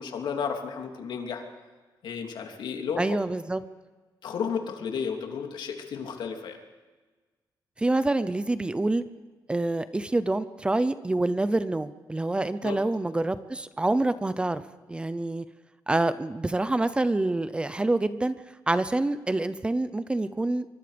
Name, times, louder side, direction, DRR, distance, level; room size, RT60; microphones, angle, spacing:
voice 1, 0.0-1.4 2.0-3.2 4.2-6.6 12.6-12.8, left 6 dB, 80° left, 3 dB, 3.1 m, -32 dB
voice 2, 3.0-3.6 7.8-9.0 9.5-14.6 14.9-15.4 15.9-18.3 18.7-20.7, right 2 dB, 15° right, 13 dB, 0.7 m, -26 dB
25.0 x 24.0 x 5.2 m, 1.3 s
wide cardioid pair, 175°, 8 cm